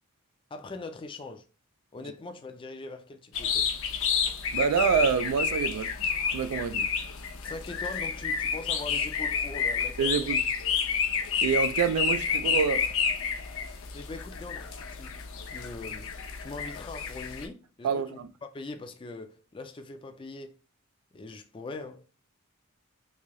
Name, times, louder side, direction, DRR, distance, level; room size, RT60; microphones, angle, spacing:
voice 1, 0.5-1.4 1.9-3.7 7.4-10.3 13.9-18.2 18.5-20.6 21.1-22.0, left 3 dB, 25° left, 0.3 m, -42 dB
sound 1, 3.3-17.5, left 6 dB, 65° left, 0.6 m, -30 dB
voice 2, 4.5-6.9 10.0-10.4 11.4-12.9 17.8-18.3, right 6 dB, 85° right, 0.3 m, -27 dB
3.2 x 2.7 x 3.6 m
head